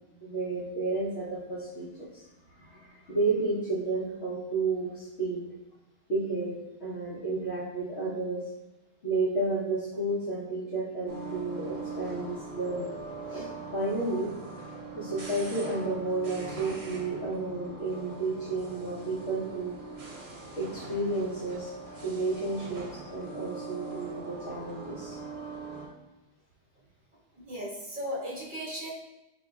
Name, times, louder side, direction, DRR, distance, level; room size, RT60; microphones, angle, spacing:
voice 1, 0.2-2.2 2.6-5.4 6.1-8.4 9.0-13.0 13.3-14.3 14.9-19.7 20.6-21.7 22.0-25.2, right 3 dB, 70° left, -11 dB, 1.3 m, -32 dB
sound 1, 11.1-25.9, right 4 dB, 75° right, 1.1 m, -41 dB
voice 2, 27.4-28.9, equal, 50° right, -8 dB, 1.6 m, -36 dB
6.3 x 2.7 x 2.3 m, 1.0 s
omnidirectional pair, 1.1 m